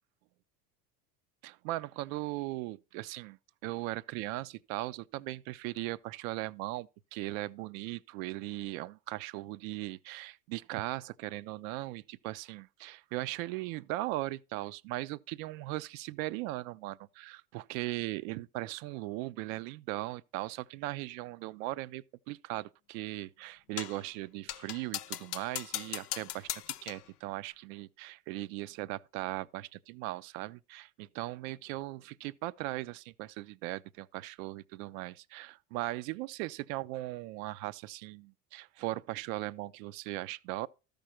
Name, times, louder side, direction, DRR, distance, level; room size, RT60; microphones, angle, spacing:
voice 1, 1.4-40.7, right 18 dB, 60° right, 0.6 m, -38 dB
sound 1, 23.8-24.0 24.5-27.1, left 13 dB, 75° left, 0.6 m, -39 dB
13.5 x 5.2 x 4.3 m
hypercardioid pair, 70°, 47 cm